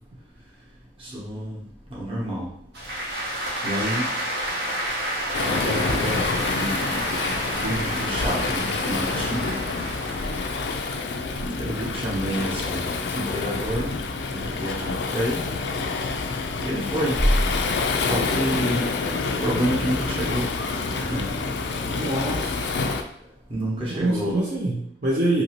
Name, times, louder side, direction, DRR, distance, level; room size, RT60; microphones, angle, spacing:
voice 1, 1.0-1.6 1.9-2.5 3.6-4.1 5.4-6.9 7.5-9.5 11.6-13.9 14.3-15.4 16.6-17.2 18.0-18.9 19.4-20.4 21.0-21.3 23.5-24.4, equal, 30° right, -5 dB, 0.9 m, -28 dB
sound 1, 2.7-15.2 15.6-17.7 18.2-19.9, right 1 dB, 70° right, 0.9 m, -31 dB
Waves surf, 5.3-23.0, left 4 dB, 80° left, 0.3 m, -27 dB
voice 2, 21.8-22.9 23.9-25.4, right 1 dB, 55° right, -5 dB, 0.5 m, -26 dB
2.7 x 2.7 x 2.9 m, 0.71 s
head